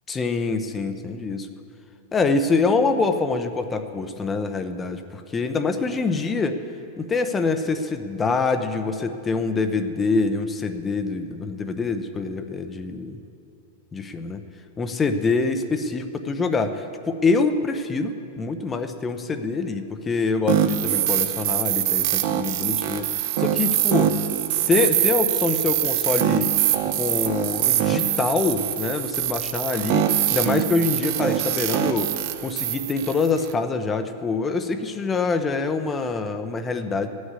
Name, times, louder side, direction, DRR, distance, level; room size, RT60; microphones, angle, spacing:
voice 1, 0.1-1.5 2.1-6.6 7.0-13.2 13.9-14.4 14.8-24.1 24.7-26.5 26.9-37.1, left 4 dB, 15° left, 8 dB, 0.7 m, -25 dB
sound 1, 20.5-33.5, right 11 dB, 50° right, 0.7 m, -23 dB
15.0 x 6.4 x 9.6 m, 2.7 s
supercardioid pair, 160°, 0 cm